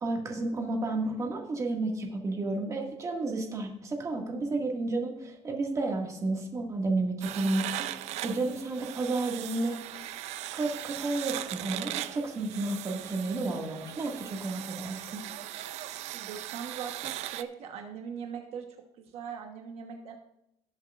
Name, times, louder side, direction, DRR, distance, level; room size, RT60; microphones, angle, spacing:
voice 1, 0.0-9.8 10.5-15.2, right 2 dB, 30° right, 1 dB, 2.1 m, -31 dB
sound 1, 7.2-17.4, right 13 dB, 80° right, 0.6 m, -39 dB
voice 2, 16.1-18.7 19.0-20.2, right 7 dB, 65° right, 3 dB, 1.2 m, -40 dB
17.5 x 8.1 x 2.5 m, 0.82 s
cardioid pair, 160°, 11 cm